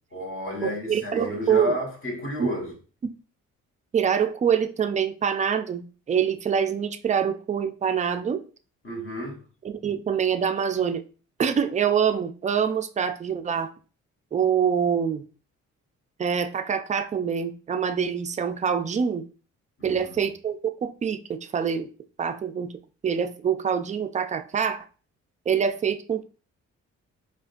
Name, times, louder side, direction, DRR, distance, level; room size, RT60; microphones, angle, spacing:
voice 1, 0.1-2.7 8.8-9.4 19.8-20.2, left 1 dB, 40° left, 1.4 m, -31 dB
voice 2, 0.6-1.8 2.4-2.5 3.9-8.4 9.6-11.0 11.4-13.7 14.3-15.2 16.2-19.2 19.8-21.9 22.2-22.7 23.0-24.9 25.5-26.2, right 7 dB, 25° right, 0.4 m, -25 dB
4.7 x 2.2 x 2.5 m
cardioid pair, 90°, 30 cm